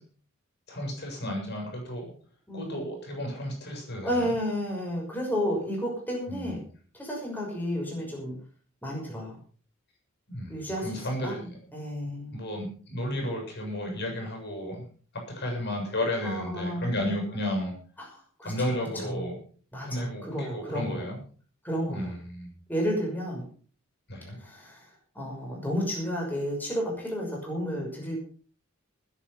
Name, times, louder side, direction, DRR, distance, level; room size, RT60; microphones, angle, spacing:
voice 1, 0.7-2.1 2.5-4.3 6.3-6.5 10.3-11.6 12.3-14.8 15.3-17.7 18.4-19.4 19.8-21.2 21.8-22.5 24.1-24.4, left 1 dB, 55° left, 2 dB, 7.8 m, -33 dB
voice 2, 2.5-2.9 4.0-6.6 6.9-8.4 8.8-9.4 10.5-11.3 11.7-12.4 16.2-17.1 18.1-19.3 19.7-21.0 21.6-22.1 22.7-23.5 24.4-24.9 25.1-28.2, equal, 10° left, -2 dB, 6.0 m, -32 dB
20.0 x 8.7 x 5.7 m, 0.42 s
head